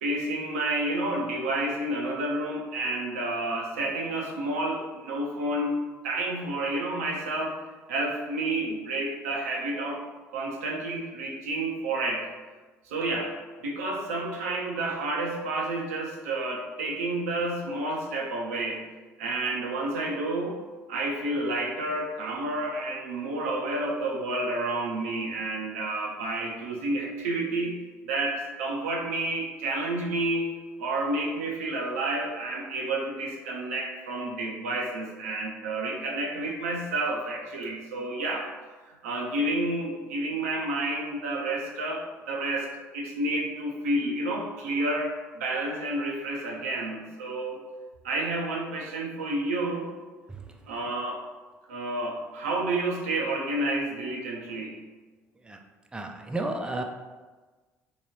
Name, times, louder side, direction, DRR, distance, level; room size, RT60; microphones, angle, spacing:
voice 1, 0.0-5.8 6.0-7.6 7.9-10.0 10.3-12.3 12.8-13.3 13.6-18.8 19.2-20.6 20.9-27.8 28.1-30.5 30.8-38.5 38.8-47.6 48.0-49.9 50.7-51.2 51.7-54.8, right 2 dB, 85° right, -1 dB, 0.4 m, -30 dB
voice 2, 55.9-56.8, right 2 dB, 10° right, 3 dB, 0.4 m, -32 dB
2.8 x 2.2 x 2.9 m, 1.3 s
hypercardioid pair, 60°, 7 cm